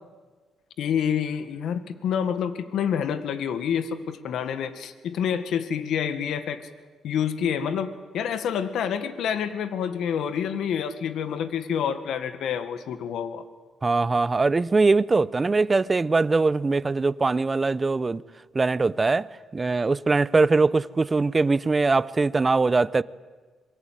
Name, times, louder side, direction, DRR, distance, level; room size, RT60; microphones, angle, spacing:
voice 1, 0.8-6.7 7.0-13.4, left 8 dB, 75° left, 1.7 m, -28 dB
voice 2, 13.8-18.2 18.5-19.3 19.5-23.0, right 3 dB, 25° right, 0.8 m, -22 dB
26.0 x 23.5 x 9.2 m
cardioid pair, 90°, 0 cm